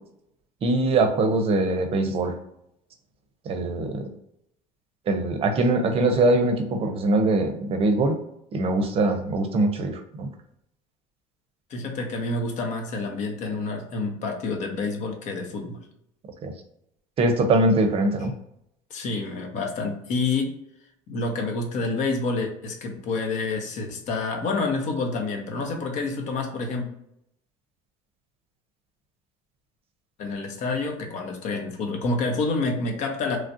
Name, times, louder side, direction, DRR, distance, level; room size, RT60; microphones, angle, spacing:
voice 1, 0.6-2.3 3.5-4.1 5.1-8.2 8.5-10.3 16.4-16.5 17.2-18.3, right 2 dB, 40° right, 6 dB, 0.6 m, -22 dB
voice 2, 11.7-15.8 18.9-20.5 21.1-26.9 30.2-33.4, left 3 dB, 55° left, 3 dB, 0.8 m, -28 dB
3.1 x 2.4 x 2.6 m, 0.76 s
supercardioid pair, 110°, 15 cm